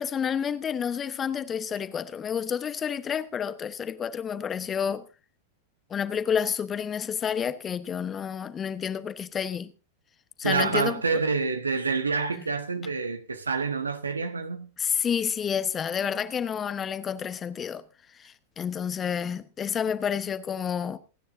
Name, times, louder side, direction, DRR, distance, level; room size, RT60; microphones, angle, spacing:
voice 1, 0.0-5.0 5.9-9.7 10.4-11.2 14.8-17.8 18.2-21.0, left 7 dB, 25° left, 1.0 m, -29 dB
voice 2, 10.4-14.7, right 4 dB, 80° right, 1.3 m, -27 dB
27.0 x 9.9 x 2.6 m
figure-of-eight pair, 95°, 0 cm